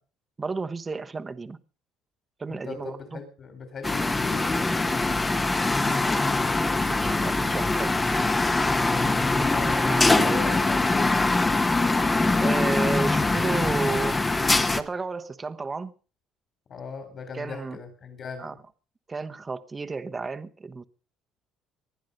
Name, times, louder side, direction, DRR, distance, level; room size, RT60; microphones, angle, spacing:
voice 1, 0.4-1.6 2.4-3.2 5.8-6.0 6.9-8.0 9.4-9.5 9.9-10.5 12.4-14.2 14.8-15.9 17.3-17.8 18.4-18.5 19.1-20.8, right 4 dB, 20° right, 1.1 m, -32 dB
voice 2, 2.5-5.3 9.3-11.5 16.7-18.6, left 5 dB, 45° left, 4.0 m, -39 dB
sound 1, 3.8-14.8, left 2 dB, 15° left, 1.1 m, -23 dB
20.0 x 11.5 x 5.4 m
cardioid pair, 130°, 0 cm